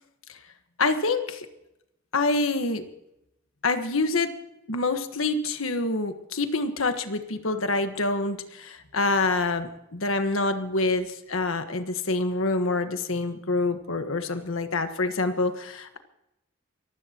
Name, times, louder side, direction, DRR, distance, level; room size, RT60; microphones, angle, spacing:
voice 1, 0.8-1.5 2.1-2.8 3.6-4.3 4.7-16.0, left 3 dB, 80° left, 8 dB, 1.4 m, -26 dB
24.0 x 15.5 x 3.0 m, 0.85 s
head